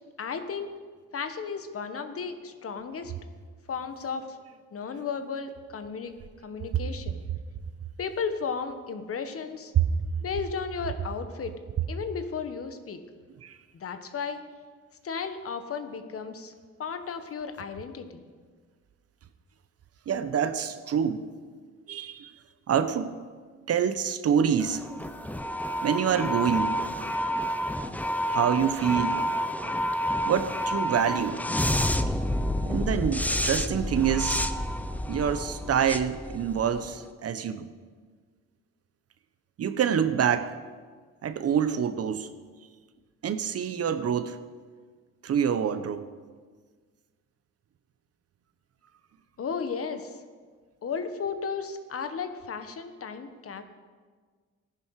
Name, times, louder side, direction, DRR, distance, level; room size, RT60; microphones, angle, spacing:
voice 1, 0.2-0.7 1.1-3.1 3.7-4.4 4.7-6.1 6.4-7.2 8.0-9.7 10.2-11.5 11.9-13.0 13.7-14.4 15.0-16.5 16.8-18.3 49.4-50.2 50.8-53.6, left 5 dB, 50° left, 9 dB, 1.2 m, -34 dB
voice 2, 20.1-21.3 21.9-22.3 22.7-23.2 23.7-24.9 25.8-26.7 28.3-29.2 30.2-31.4 32.6-34.4 35.1-37.7 39.6-40.5 41.2-42.3 43.2-44.4 45.2-46.0, right 8 dB, 55° right, 11 dB, 0.9 m, -26 dB
sound 1, 24.6-37.0, equal, 5° left, 0.7 m, -29 dB
15.0 x 10.5 x 4.8 m, 1.5 s
cardioid pair, 90°, 30 cm